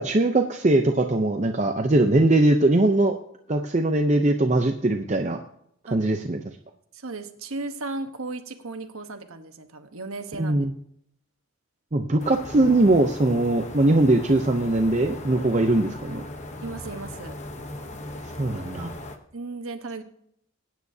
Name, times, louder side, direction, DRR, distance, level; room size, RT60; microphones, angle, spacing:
voice 1, 0.0-3.1 3.5-5.4 5.9-6.4 10.4-10.7 11.9-16.2 18.4-18.9, right 2 dB, 35° right, 4 dB, 0.6 m, -21 dB
voice 2, 6.9-10.6 16.6-17.4 19.3-20.0, right 3 dB, 80° right, 8 dB, 1.1 m, -35 dB
sound 1, 12.2-19.2, left 1 dB, 35° left, 0.9 m, -38 dB
21.5 x 9.3 x 2.8 m, 0.73 s
head